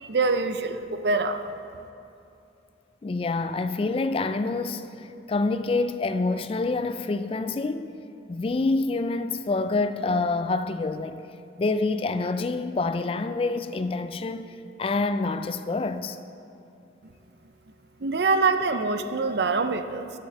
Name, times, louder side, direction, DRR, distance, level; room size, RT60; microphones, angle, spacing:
voice 1, 0.0-1.4 18.0-20.1, right 3 dB, 65° right, 0.5 m, -24 dB
voice 2, 3.0-7.9 8.3-11.2 11.6-16.2, left 3 dB, 30° left, 0.3 m, -27 dB
12.5 x 7.4 x 4.7 m
head